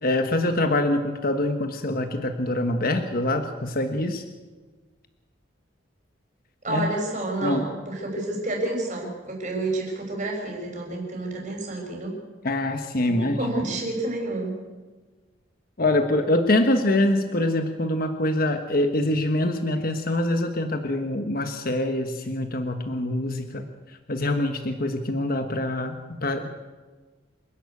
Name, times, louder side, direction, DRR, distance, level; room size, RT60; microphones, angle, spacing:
voice 1, 0.0-4.2 6.7-6.9 7.4-7.7 12.4-13.4 15.8-23.6 24.1-26.0 26.2-26.5, left 1 dB, 50° left, 6 dB, 1.3 m, -24 dB
voice 2, 6.6-12.2 13.0-14.6, right 2 dB, 40° right, 0 dB, 6.4 m, -29 dB
27.5 x 11.5 x 8.5 m, 1.3 s
head